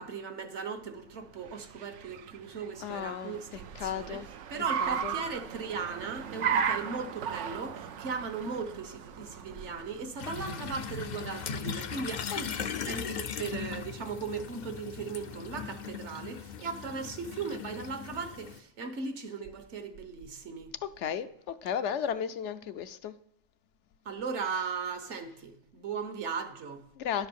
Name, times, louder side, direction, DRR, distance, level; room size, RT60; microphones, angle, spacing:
voice 1, 0.0-4.2 4.5-12.5 12.8-20.7 24.0-26.9, right 5 dB, 75° right, 1.3 m, -38 dB
Car, 1.1-11.3, right 7 dB, 90° right, 1.0 m, -36 dB
voice 2, 2.8-4.3 4.8-5.1 10.5-10.6 12.3-12.4 21.0-23.1 27.0-27.3, left 8 dB, 75° left, 0.9 m, -34 dB
sound 1, 10.2-18.6, left 6 dB, 55° left, 0.5 m, -38 dB
11.0 x 4.6 x 6.9 m
omnidirectional pair, 1.2 m